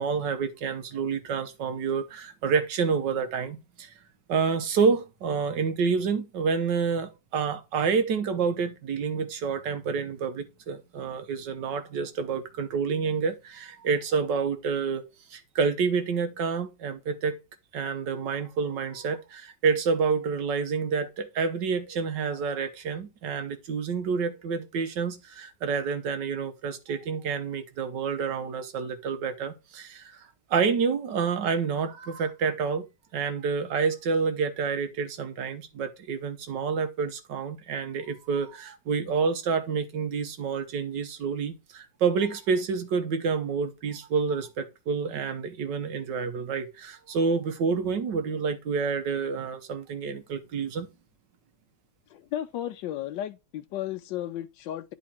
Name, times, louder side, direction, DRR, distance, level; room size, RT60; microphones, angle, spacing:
voice 1, 0.0-3.9 4.3-17.4 17.7-32.9 33.1-50.9, right 5 dB, 75° right, 1.8 m, -28 dB
voice 2, 52.1-54.9, left 12 dB, 85° left, 1.3 m, -34 dB
10.0 x 4.1 x 4.4 m
omnidirectional pair, 1.9 m